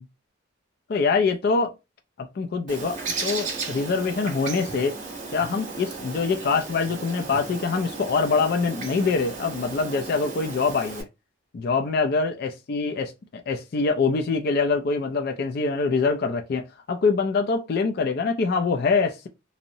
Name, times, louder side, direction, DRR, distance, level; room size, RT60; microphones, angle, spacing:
voice 1, 0.9-1.7 2.2-5.0 5.3-11.1 11.5-19.3, left 4 dB, 50° left, 0.3 m, -24 dB
Bird, 2.7-11.0, right 4 dB, 40° right, 0.8 m, -35 dB
2.7 x 2.0 x 2.5 m
head